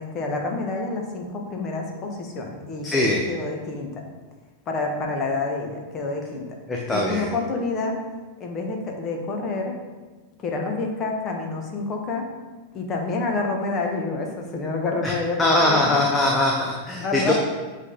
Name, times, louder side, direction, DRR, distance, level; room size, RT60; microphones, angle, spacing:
voice 1, 0.0-3.9 4.7-6.4 6.9-8.0 8.4-9.7 10.4-12.3 12.7-16.0 17.0-17.3, left 3 dB, 30° left, 2 dB, 1.3 m, -28 dB
voice 2, 2.8-3.2 6.7-7.3 15.0-15.1 15.4-17.3, left 1 dB, 15° left, -1 dB, 0.7 m, -21 dB
8.0 x 3.7 x 3.9 m, 1.3 s
figure-of-eight pair, 90°, 0 cm